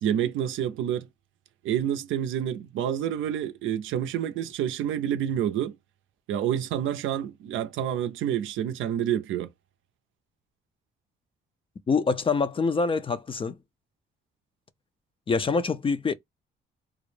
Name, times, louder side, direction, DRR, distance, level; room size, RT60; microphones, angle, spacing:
voice 1, 0.0-1.1 1.6-5.8 6.3-9.5, right 10 dB, 80° right, 0.5 m, -28 dB
voice 2, 11.9-13.6 15.3-16.1, left 4 dB, 25° left, 0.4 m, -25 dB
2.3 x 2.0 x 3.1 m
cardioid pair, 90°, 20 cm